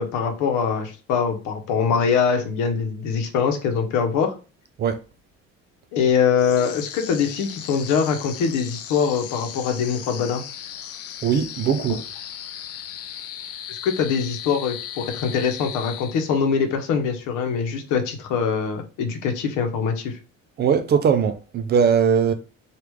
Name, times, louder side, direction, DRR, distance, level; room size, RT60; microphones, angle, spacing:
voice 1, 0.0-4.3 5.9-10.4 13.7-20.2, left 6 dB, 85° left, 0.8 m, -23 dB
sound 1, 6.4-16.6, left 10 dB, 55° left, 0.4 m, -37 dB
voice 2, 11.2-12.0 20.6-22.3, right 7 dB, 35° right, 0.4 m, -20 dB
3.4 x 2.4 x 3.1 m
cardioid pair, 135°, 29 cm